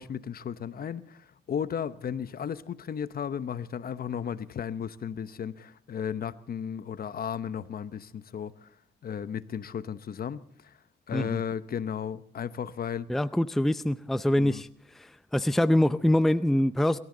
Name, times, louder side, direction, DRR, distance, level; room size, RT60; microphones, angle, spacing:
voice 1, 0.0-8.7 9.0-10.8 11.1-13.1 14.3-14.6, left 8 dB, 50° left, 0.9 m, -35 dB
voice 2, 13.1-14.7 14.9-17.0, left 1 dB, ahead, 0.5 m, -24 dB
23.0 x 14.0 x 3.9 m
cardioid pair, 90°, 20 cm